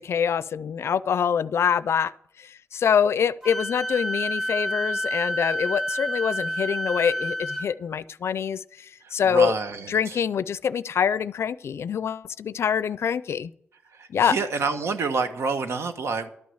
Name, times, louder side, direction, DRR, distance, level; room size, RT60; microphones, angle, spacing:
voice 1, 0.0-2.1 2.7-8.6 9.1-9.5 9.9-13.5 14.1-14.3, left 7 dB, 80° left, 18 dB, 0.4 m, -25 dB
Wind instrument woodwind instrument, 3.4-7.6, equal, 15° right, 2.4 m, -29 dB
voice 2, 9.2-10.2 14.2-16.3, right 4 dB, 85° right, 8 dB, 1.2 m, -27 dB
12.0 x 6.3 x 8.4 m, 0.69 s
wide cardioid pair, 160°, 4 cm